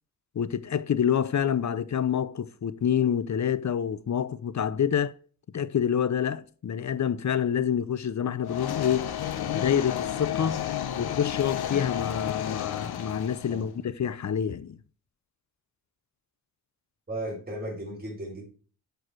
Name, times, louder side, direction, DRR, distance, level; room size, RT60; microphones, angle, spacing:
voice 1, 0.4-5.2 5.5-9.1 9.5-10.6 11.0-14.8, left 8 dB, 50° left, 0.7 m, -27 dB
sound 1, 8.4-13.6, left 10 dB, 75° left, 0.9 m, -31 dB
voice 2, 17.1-18.5, right 1 dB, 25° right, 5.2 m, -35 dB
11.0 x 4.7 x 4.6 m
cardioid pair, 70°, 38 cm